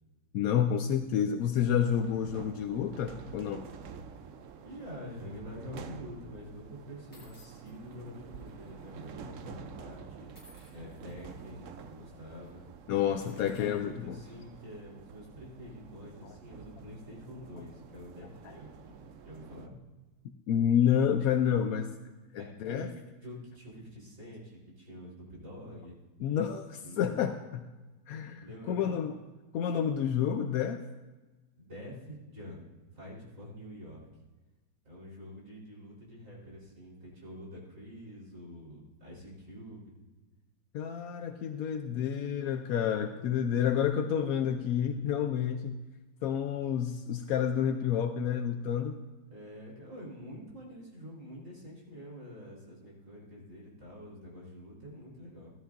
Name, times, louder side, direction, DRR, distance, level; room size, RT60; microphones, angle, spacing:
voice 1, 0.3-3.7 12.9-14.2 20.5-21.9 22.3-22.9 26.2-27.6 28.1-29.1 29.5-30.8 40.7-45.8 46.2-49.0, left 8 dB, 80° left, 7 dB, 0.8 m, -29 dB
sound 1, 1.7-19.7, right 6 dB, 85° right, 0.6 m, -49 dB
voice 2, 4.6-10.3 10.7-12.7 13.2-19.0 19.2-19.7 22.4-22.9 23.2-26.0 26.8-27.2 28.4-29.0 31.6-32.6 32.9-34.1 34.8-39.9 49.3-55.5, equal, 40° right, -5 dB, 4.2 m, -46 dB
sound 2, 5.4-5.7 6.5-6.6 7.1-9.1 9.3-9.5 10.3-11.5 11.9-12.1 12.4-12.6 13.1-14.6, left 1 dB, 10° left, 4.9 m, -62 dB
16.0 x 12.5 x 2.5 m, 1.2 s
omnidirectional pair, 2.1 m